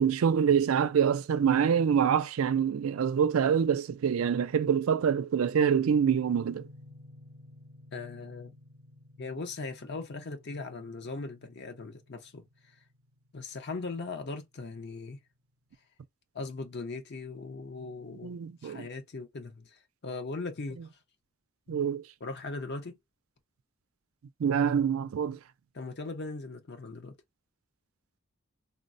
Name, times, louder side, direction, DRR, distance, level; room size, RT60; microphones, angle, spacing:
voice 1, 0.0-6.7 18.2-18.9 21.7-22.0 24.4-25.4, right 7 dB, 90° right, 0.4 m, -26 dB
sound 1, 5.7-14.4, left 1 dB, 80° left, 1.6 m, -53 dB
voice 2, 7.9-8.5 9.2-12.4 13.3-15.2 16.3-20.9 21.7-21.8 22.2-23.0 25.7-27.2, left 3 dB, 55° left, 0.8 m, -39 dB
3.7 x 2.1 x 2.5 m
head